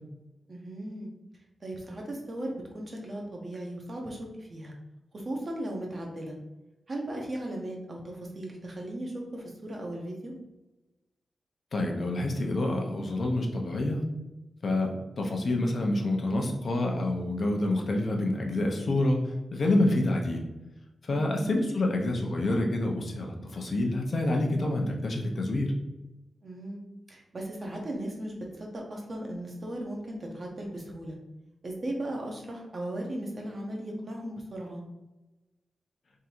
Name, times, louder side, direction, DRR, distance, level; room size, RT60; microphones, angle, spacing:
voice 1, 0.5-1.1 1.6-4.7 5.1-6.4 6.9-10.3 21.1-21.5 26.4-26.8 27.1-31.2 31.6-34.8, right 1 dB, 45° right, 0 dB, 1.0 m, -37 dB
voice 2, 11.7-14.0 14.6-20.5 21.1-25.7, left 1 dB, 55° left, 1 dB, 0.7 m, -27 dB
3.7 x 2.7 x 4.4 m, 1.0 s
wide cardioid pair, 100°, 0 cm